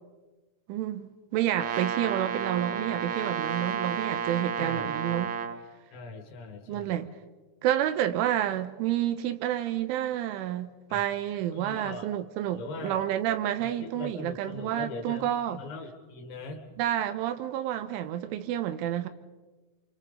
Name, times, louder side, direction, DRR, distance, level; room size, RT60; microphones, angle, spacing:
voice 1, 0.7-5.3 6.7-7.1 7.6-15.6 16.8-19.1, right 11 dB, 90° right, 3.5 m, -29 dB
Brass instrument, 1.5-5.6, right 7 dB, 65° right, 2.9 m, -31 dB
voice 2, 4.6-5.3 5.9-7.0 10.9-11.0 11.5-12.1 12.5-13.1 13.6-16.7, left 2 dB, 70° left, 4.4 m, -41 dB
28.5 x 27.5 x 4.1 m
omnidirectional pair, 5.5 m